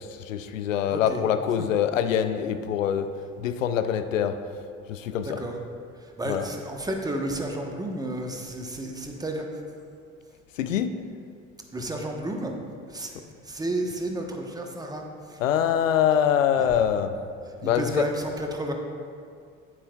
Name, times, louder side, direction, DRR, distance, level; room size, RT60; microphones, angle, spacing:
voice 1, 0.0-3.1 3.4-4.4 4.9-5.4 6.2-6.5 10.6-10.9 15.4-17.1 17.6-18.1, left 9 dB, 85° left, 10 dB, 0.5 m, -24 dB
voice 2, 0.9-1.2 1.6-1.7 5.2-5.5 6.0-9.4 11.7-12.6 12.9-13.1 13.4-15.4 16.6-16.7 17.6-18.7, right 1 dB, 10° right, 2 dB, 1.2 m, -32 dB
11.0 x 8.8 x 2.4 m, 2.3 s
hypercardioid pair, 65°, 38 cm